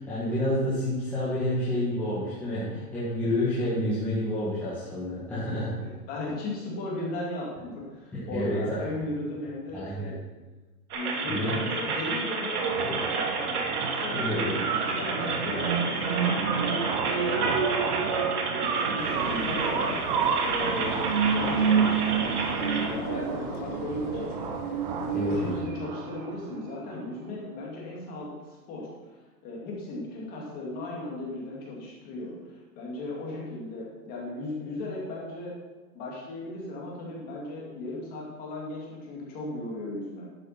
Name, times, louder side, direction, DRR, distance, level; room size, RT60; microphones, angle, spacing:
voice 1, 0.0-5.7 8.1-8.8 9.7-10.1 11.3-11.7 14.1-14.4 25.1-25.6, left 1 dB, 5° left, -11 dB, 1.6 m, -29 dB
voice 2, 5.7-10.2 10.9-17.7 18.4-24.6 25.1-29.2 29.4-35.6 35.9-40.3, left 2 dB, 20° left, -3 dB, 2.3 m, -37 dB
sound 1, 10.9-22.9, right 3 dB, 70° right, 2.6 m, -31 dB
sound 2, 12.5-26.5, right 6 dB, 30° right, 0.9 m, -29 dB
sound 3, 19.0-25.7, left 6 dB, 65° left, 1.4 m, -46 dB
12.0 x 6.3 x 5.8 m, 1.2 s
hypercardioid pair, 170°, 47 cm